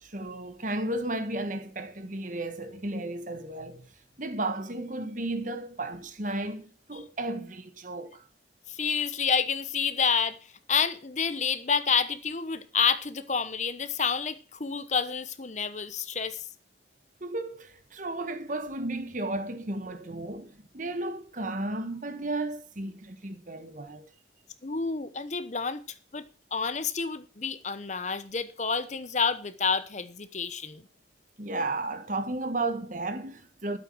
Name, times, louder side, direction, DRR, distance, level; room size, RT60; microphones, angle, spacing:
voice 1, 0.0-3.9 4.2-8.2 17.2-24.1 31.4-33.8, right 2 dB, 45° right, 1.5 m, -34 dB
voice 2, 8.7-10.4 10.7-16.5 24.6-25.8 26.1-30.8, left 6 dB, 40° left, 1.0 m, -29 dB
12.0 x 8.3 x 6.2 m
head